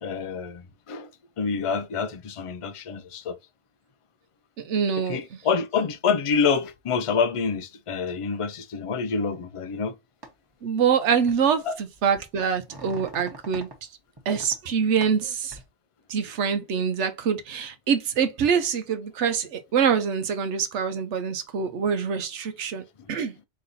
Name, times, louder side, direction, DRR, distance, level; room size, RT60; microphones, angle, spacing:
voice 1, 0.0-1.1 1.4-3.4 5.1-9.9 11.6-11.8, left 5 dB, 45° left, 0.4 m, -27 dB
voice 2, 4.6-5.4 10.6-13.7 14.3-15.6 16.1-23.3, right 7 dB, 90° right, 1.1 m, -25 dB
sound 1, 10.2-10.3 11.2-11.5 11.9-13.8 14.2-14.6 15.0-15.6, right 2 dB, 25° right, 1.0 m, -43 dB
4.0 x 3.1 x 4.0 m
omnidirectional pair, 1.2 m